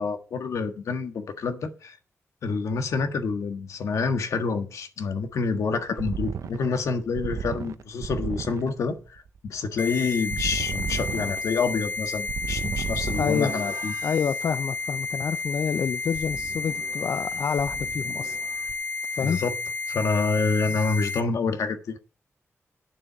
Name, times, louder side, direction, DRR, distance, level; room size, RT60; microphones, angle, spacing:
voice 1, 0.0-2.0 2.4-13.9 19.2-19.5 19.9-22.0, left 4 dB, 85° left, 1.5 m, -27 dB
sound 1, 5.3-14.2 16.1-17.3 17.6-18.7, right 7 dB, 80° right, 0.7 m, -34 dB
sound 2, 9.8-21.2, left 4 dB, 35° left, 1.4 m, -31 dB
voice 2, 13.2-13.5 14.0-18.4 19.1-19.4, left 7 dB, 70° left, 0.5 m, -28 dB
9.1 x 7.1 x 5.7 m
wide cardioid pair, 100°, 5 cm